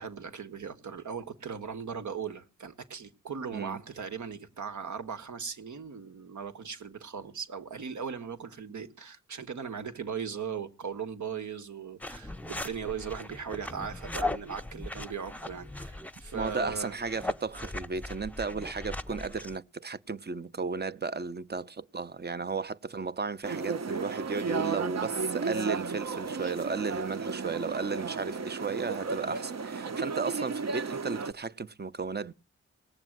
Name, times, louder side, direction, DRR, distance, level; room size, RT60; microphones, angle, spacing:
voice 1, 0.0-17.0, right 6 dB, 80° right, 1.6 m, -38 dB
sound 1, 12.0-19.6, left 2 dB, 5° left, 0.9 m, -38 dB
voice 2, 16.3-32.3, right 4 dB, 35° right, 0.8 m, -34 dB
sound 2, 23.4-31.3, right 5 dB, 60° right, 1.1 m, -34 dB
18.5 x 7.1 x 7.8 m
cardioid pair, 50°, 29 cm